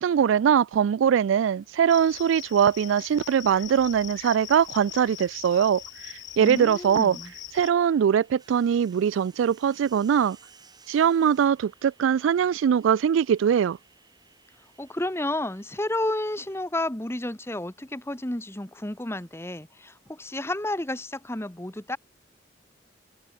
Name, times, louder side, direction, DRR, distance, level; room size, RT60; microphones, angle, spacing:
voice 1, 0.0-7.2 7.5-10.4 10.9-13.8, right 8 dB, 90° right, 0.3 m, -22 dB
sound 1, 1.7-16.6, right 5 dB, 20° right, 2.9 m, -58 dB
Cricket, 1.9-7.7, left 14 dB, 75° left, 0.8 m, -42 dB
voice 2, 6.4-7.3 14.8-22.0, left 1 dB, 15° left, 1.3 m, -31 dB
head